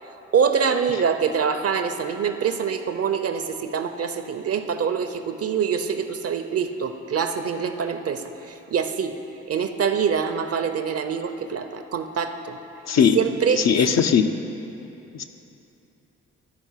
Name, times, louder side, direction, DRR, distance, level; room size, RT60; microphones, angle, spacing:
voice 1, 0.3-9.1 9.5-12.6 13.1-13.8, right 6 dB, 50° right, 8 dB, 0.7 m, -25 dB
voice 2, 13.7-14.3 15.2-15.3, left 7 dB, 55° left, 7 dB, 0.6 m, -18 dB
11.5 x 4.4 x 5.6 m, 3.0 s
supercardioid pair, 45°, 32 cm